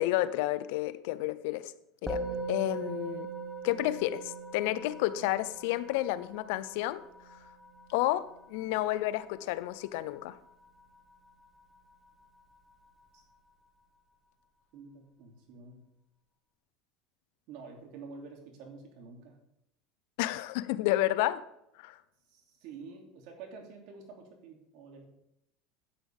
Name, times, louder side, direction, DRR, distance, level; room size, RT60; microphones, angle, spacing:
voice 1, 0.0-1.7 2.0-2.2 2.5-3.3 3.6-7.0 7.9-10.4 20.2-21.4 21.8-22.0, left 15 dB, 75° left, 0.6 m, -30 dB
Musical instrument, 2.1-11.6, right 3 dB, 5° right, 1.4 m, -42 dB
voice 2, 2.2-2.5 13.1-13.2 14.7-15.9 17.5-19.4 22.3-25.1, right 4 dB, 65° right, 2.8 m, -48 dB
11.5 x 8.6 x 3.5 m
supercardioid pair, 120°, 0 cm